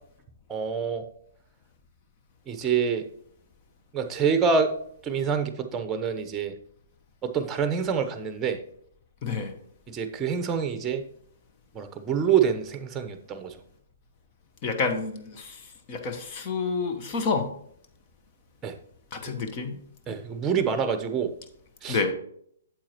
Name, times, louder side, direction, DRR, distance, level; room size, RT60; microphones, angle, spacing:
voice 1, 0.5-1.0 2.5-3.0 3.9-4.7 5.0-6.5 7.2-8.6 9.9-11.0 11.7-13.6 18.6-18.7 20.1-21.3 21.8-22.0, right 6 dB, 15° right, 9 dB, 0.9 m, -26 dB
voice 2, 9.2-9.5 14.6-17.5 19.1-19.8 21.9-22.1, left 4 dB, 35° left, 6 dB, 1.1 m, -29 dB
8.8 x 7.5 x 3.0 m, 0.65 s
figure-of-eight pair, 120°, 0 cm